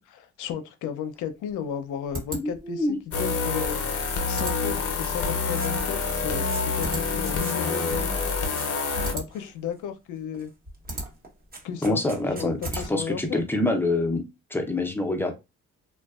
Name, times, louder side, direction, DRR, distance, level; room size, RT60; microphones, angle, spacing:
voice 1, 0.1-3.8 4.3-8.1 9.1-10.5 11.6-12.0 12.3-13.4, left 8 dB, 80° left, 0.5 m, -34 dB
sound 1, 1.1-13.3, right 1 dB, 45° right, 1.1 m, -40 dB
voice 2, 2.4-3.0 11.8-14.2 14.5-15.4, left 2 dB, 5° left, 0.6 m, -26 dB
sound 2, 3.1-9.1, left 4 dB, 50° left, 0.7 m, -27 dB
sound 3, 5.4-5.7 6.0-6.8 7.1-7.6 8.1-9.0 9.3-9.9 10.3-10.5 10.7-12.8, right 3 dB, 30° right, 0.8 m, -45 dB
2.5 x 2.2 x 2.3 m
cardioid pair, 90°, 30 cm